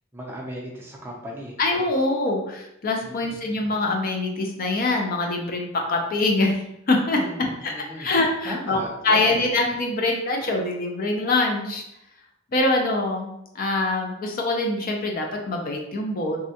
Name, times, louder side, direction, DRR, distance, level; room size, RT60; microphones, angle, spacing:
voice 1, 0.1-1.6 3.0-3.4 7.1-8.1 8.4-9.5, equal, 10° right, -2 dB, 0.5 m, -36 dB
voice 2, 1.6-6.6 6.9-7.2 7.6-7.7 8.0-11.8 12.5-13.3 13.6-16.4, left 2 dB, 45° left, 2 dB, 0.4 m, -24 dB
3.5 x 2.1 x 2.7 m, 0.83 s
head